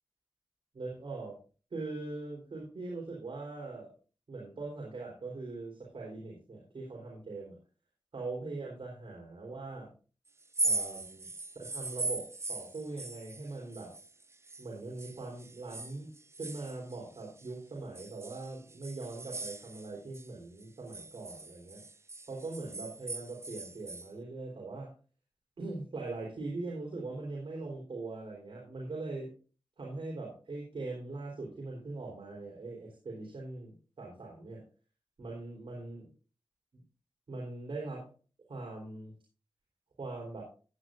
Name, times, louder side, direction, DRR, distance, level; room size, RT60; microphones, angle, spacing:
voice 1, 0.7-1.4 1.7-3.9 4.3-7.6 8.1-9.9 10.6-11.3 11.6-13.9 14.6-16.1 16.4-21.8 22.3-24.9 25.6-29.3 29.8-34.6 35.2-36.1 36.7-36.8 37.3-38.1 38.5-39.1 40.0-40.4, right 3 dB, 80° right, -2 dB, 4.0 m, -41 dB
sound 1, 10.4-14.7 15.0-17.5 17.9-20.3 20.6-24.1, right 3 dB, 30° right, 0.5 m, -39 dB
15.5 x 9.6 x 2.6 m, 0.35 s
wide cardioid pair, 80°, 9 cm